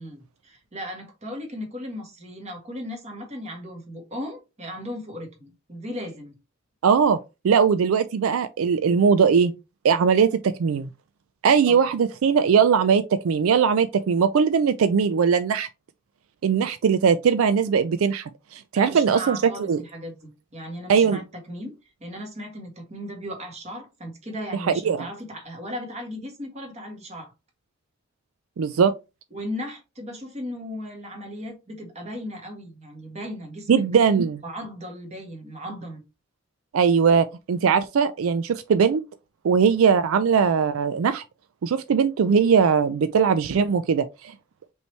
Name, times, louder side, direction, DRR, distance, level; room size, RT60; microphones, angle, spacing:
voice 1, 0.0-6.3 11.7-11.9 18.7-27.3 29.3-33.8 34.4-36.0, equal, 35° right, 1.6 m, -36 dB
voice 2, 6.8-7.2 7.4-9.5 9.8-10.9 11.4-15.7 16.4-19.4 19.7-19.8 20.9-21.2 24.8-25.0 28.6-28.9 33.7-34.4 36.7-39.0 39.4-41.2 41.6-44.3, right 6 dB, 85° right, 0.4 m, -20 dB
5.2 x 3.2 x 3.2 m
head